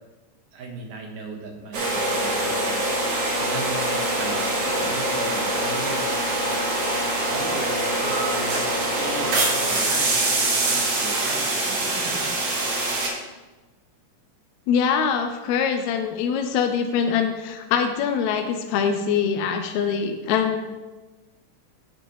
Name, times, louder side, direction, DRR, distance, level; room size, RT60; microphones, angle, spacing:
voice 1, 0.5-2.8 3.4-6.5 7.3-12.6, right 3 dB, 85° right, 2 dB, 2.8 m, -37 dB
sound 1, 1.7-13.1, right 2 dB, 55° right, 2.2 m, -24 dB
voice 2, 14.7-20.8, left 7 dB, 80° left, 5 dB, 1.7 m, -23 dB
9.3 x 7.8 x 3.1 m, 1.2 s
omnidirectional pair, 3.6 m